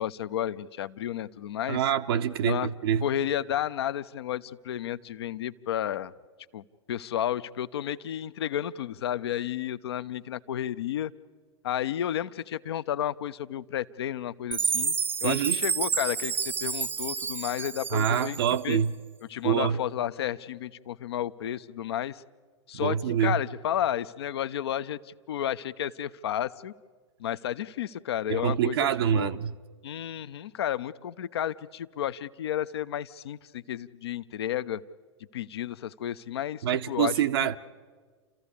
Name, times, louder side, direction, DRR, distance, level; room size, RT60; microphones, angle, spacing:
voice 1, 0.0-1.8 2.4-2.7 3.0-6.1 6.5-11.1 11.6-15.0 15.2-18.8 19.3-22.2 22.7-26.7 27.2-28.9 29.1-29.3 29.8-34.8 35.3-37.6, left 11 dB, 60° left, 0.7 m, -32 dB
voice 2, 1.7-3.1 15.2-15.6 17.9-18.9 19.4-19.8 22.7-23.4 28.3-29.5 36.6-37.6, right 9 dB, 55° right, 0.7 m, -26 dB
Chime, 14.5-18.7, right 5 dB, 15° right, 0.6 m, -30 dB
29.5 x 14.0 x 8.5 m
figure-of-eight pair, 100°, 15 cm